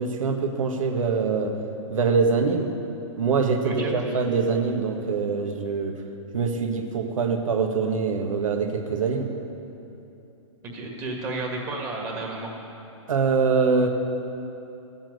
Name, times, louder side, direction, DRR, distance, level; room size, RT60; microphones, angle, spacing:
voice 1, 0.0-1.6 1.9-2.7 3.2-6.0 6.3-9.3 13.1-13.9, right 5 dB, 80° right, 3 dB, 1.7 m, -24 dB
voice 2, 3.6-4.2 10.6-12.5, right 2 dB, 20° right, -1 dB, 1.8 m, -32 dB
13.5 x 7.5 x 9.4 m, 2.9 s
hypercardioid pair, 165°, 17 cm